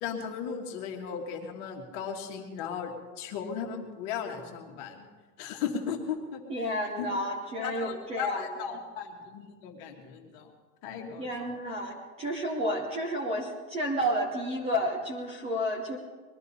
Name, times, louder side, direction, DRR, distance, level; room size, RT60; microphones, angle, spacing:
voice 1, 0.0-5.1 5.4-6.7 7.0-7.1 7.6-10.5 10.8-11.5, left 7 dB, 30° left, 3 dB, 1.7 m, -36 dB
voice 2, 6.5-8.4 11.2-16.0, equal, 15° right, 1 dB, 0.9 m, -31 dB
21.0 x 13.0 x 4.2 m, 1.4 s
supercardioid pair, 165°, 44 cm